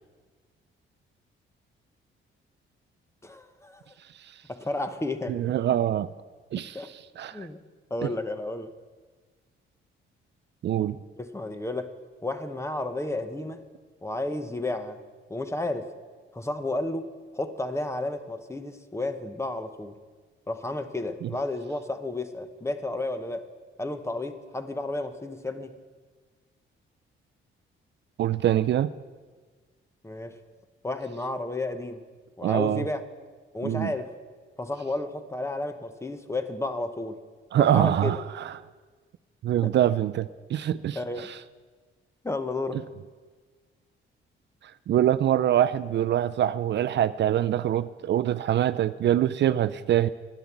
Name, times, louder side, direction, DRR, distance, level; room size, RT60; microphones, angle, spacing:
voice 1, 3.2-3.8 4.5-5.4 6.7-6.9 7.3-7.6 7.9-8.7 11.2-11.9 12.2-13.6 14.0-15.0 15.3-15.9 16.3-17.1 17.3-19.9 20.5-23.4 23.8-25.7 30.0-30.4 30.8-32.0 32.4-33.0 33.5-34.1 34.6-37.2 37.6-38.1 39.6-39.7 40.9-41.3 42.2-42.8, left 2 dB, 15° left, 9 dB, 1.0 m, -32 dB
voice 2, 5.3-6.1 6.5-7.5 8.0-8.1 10.6-11.0 21.2-21.3 28.2-28.9 32.4-32.8 33.6-33.9 37.5-38.5 39.4-41.4 42.7-42.8 44.9-50.1, right 11 dB, 55° right, 13 dB, 0.4 m, -24 dB
11.0 x 10.5 x 7.2 m, 1.5 s
cardioid pair, 90°, 21 cm